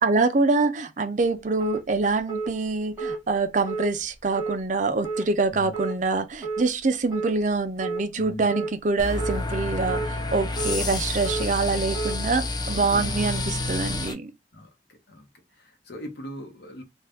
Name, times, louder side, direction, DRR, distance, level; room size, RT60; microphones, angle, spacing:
voice 1, 0.0-14.3, right 3 dB, 45° right, 0.5 m, -25 dB
sound 1, 1.6-1.8 2.3-2.5 3.0-3.2 3.6-3.9 4.4-4.6 5.0-5.3 5.7-5.9 6.4-6.6 7.1-7.3 7.8-8.0 8.5-8.7 9.2-9.4 9.9-10.1 10.6-10.8 11.2-11.5 11.9-12.2, right 4 dB, 15° right, 1.0 m, -30 dB
voice 2, 8.2-8.5 12.9-13.3 14.5-15.3 15.6-16.8, equal, 65° left, 1.0 m, -40 dB
sound 2, 9.0-14.1, left 2 dB, 25° left, 0.4 m, -29 dB
2.6 x 2.3 x 3.4 m
head